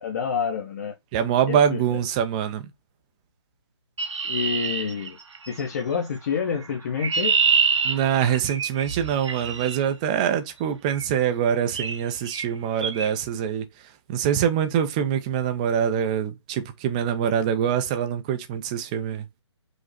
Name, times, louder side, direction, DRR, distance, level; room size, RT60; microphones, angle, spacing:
voice 1, 0.0-0.9 1.5-1.8 4.2-5.2 5.5-7.3, left 6 dB, 35° left, 0.8 m, -28 dB
voice 2, 1.1-2.7 7.8-13.7 14.1-19.3, right 8 dB, 15° right, 0.4 m, -24 dB
Chirp tweet, 4.0-5.6 6.6-9.8 10.9-11.1 11.7-12.0 12.3-12.5 12.8-13.1, right 5 dB, 75° right, 0.9 m, -26 dB
5.1 x 2.0 x 4.0 m
figure-of-eight pair, 150°, 15 cm